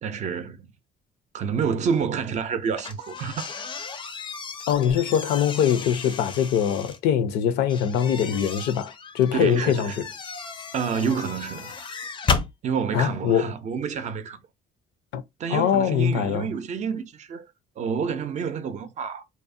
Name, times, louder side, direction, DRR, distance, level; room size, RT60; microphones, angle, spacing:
voice 1, 0.0-0.7 1.3-3.5 9.3-10.1 10.7-11.7 12.6-14.4 15.4-17.5 17.8-19.2, right 6 dB, 45° right, 0.4 m, -28 dB
sound 1, 2.7-7.0 7.7-12.5, left 5 dB, 30° left, 0.4 m, -33 dB
voice 2, 4.7-10.0 12.9-13.5 15.1-15.2 15.5-16.5, left 9 dB, 85° left, 0.5 m, -23 dB
2.7 x 2.0 x 2.5 m
cardioid pair, 110°, 17 cm